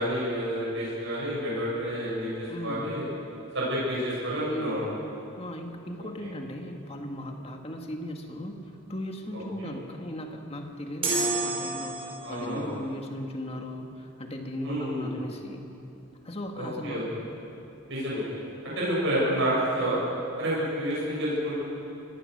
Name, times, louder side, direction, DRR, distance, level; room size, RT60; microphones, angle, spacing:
voice 1, 0.0-3.0 3.5-4.9 9.6-9.7 12.2-12.8 14.6-15.1 16.6-17.0 17.9-18.2 18.6-20.0 20.4-21.6, equal, 55° right, -7 dB, 7.5 m, -29 dB
voice 2, 2.5-2.9 4.5-4.9 5.4-8.6 8.9-15.6 16.2-17.0, left 1 dB, 25° left, 3 dB, 1.9 m, -37 dB
sound 1, 11.0-12.5, right 3 dB, 25° right, 5.3 m, -29 dB
25.5 x 18.5 x 6.7 m, 2.7 s
head